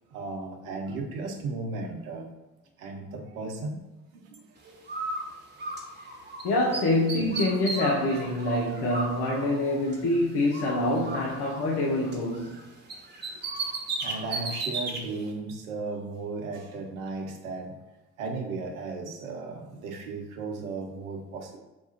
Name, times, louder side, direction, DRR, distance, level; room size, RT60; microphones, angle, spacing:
voice 1, 0.1-2.3 2.8-3.8 4.1-4.8 6.3-6.5 13.6-13.7 14.0-17.7 18.2-21.6, right 3 dB, 85° right, 0.8 m, -35 dB
Bird, 4.9-6.4 6.7-10.2 10.5-12.6 12.9-15.0, right 2 dB, 25° right, 1.1 m, -35 dB
voice 2, 6.4-12.6, left 1 dB, 65° left, 0.9 m, -26 dB
4.5 x 2.4 x 4.2 m
hypercardioid pair, 55°, 41 cm